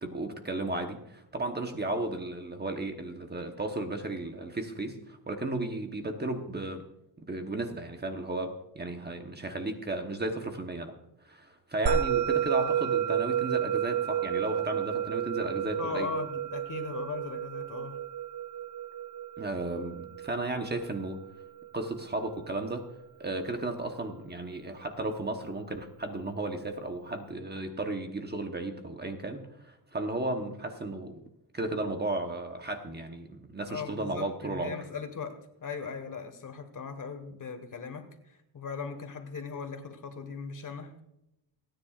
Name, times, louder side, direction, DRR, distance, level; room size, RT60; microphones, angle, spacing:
voice 1, 0.0-6.8 7.2-10.9 11.2-16.1 19.4-21.2 21.7-22.9 23.2-31.2 31.5-34.8, right 2 dB, 25° right, 4 dB, 1.0 m, -34 dB
Musical instrument, 11.9-22.5, right 9 dB, 85° right, 1.3 m, -31 dB
voice 2, 15.8-18.0 33.6-41.0, left 5 dB, 45° left, 7 dB, 1.6 m, -39 dB
29.5 x 10.0 x 2.4 m, 0.85 s
wide cardioid pair, 175°, 43 cm